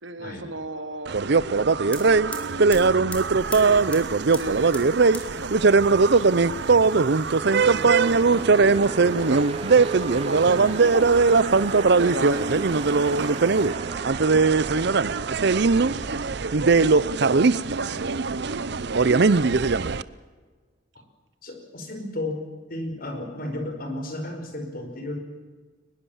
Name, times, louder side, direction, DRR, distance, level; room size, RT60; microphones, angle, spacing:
voice 1, 0.0-1.1 1.9-3.2 3.5-3.8 4.3-4.7 5.4-7.1 7.4-8.2 8.5-8.7 9.2-9.4 9.9-13.3 15.1-19.0 19.4-20.0, right 2 dB, 80° right, 9 dB, 2.2 m, -36 dB
sound 1, 1.1-20.0, right 4 dB, 60° right, 0.7 m, -20 dB
sound 2, 1.5-1.6 1.8-13.8 14.2-15.0 15.3-16.3, left 1 dB, 5° left, 3.6 m, -45 dB
sound 3, 7.4-19.5, right 2 dB, 30° right, 0.8 m, -37 dB
voice 2, 8.3-8.6 10.5-10.7 21.4-22.4 22.7-25.2, left 1 dB, 50° left, 4 dB, 4.9 m, -33 dB
22.5 x 21.0 x 7.2 m, 1.4 s
head